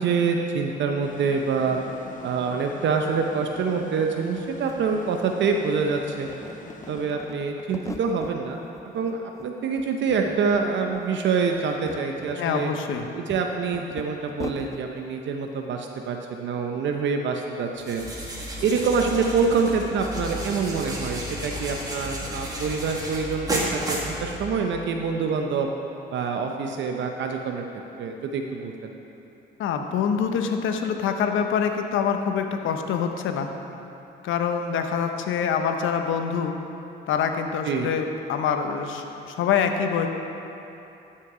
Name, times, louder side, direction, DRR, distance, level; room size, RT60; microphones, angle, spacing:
voice 1, 0.0-1.8 2.2-6.3 6.9-12.7 13.1-18.1 18.6-25.7 26.1-27.6 28.0-28.9 37.6-37.9, right 5 dB, 70° right, 3 dB, 0.7 m, -26 dB
sound 1, 1.0-7.6, left 4 dB, 40° left, 0.8 m, -44 dB
sound 2, 4.4-4.5 4.7-5.8 6.2-8.4 8.8-9.5 9.8-10.6 10.9-11.1 11.5-14.8, left 3 dB, 15° left, 0.4 m, -40 dB
voice 2, 12.4-13.0 29.6-33.5 34.2-36.6 37.1-40.1, left 7 dB, 80° left, 5 dB, 0.8 m, -25 dB
sound 3, 17.8-24.8, equal, 20° right, 1.9 m, -32 dB
12.5 x 5.8 x 4.9 m, 3.0 s
cardioid pair, 90°, 20 cm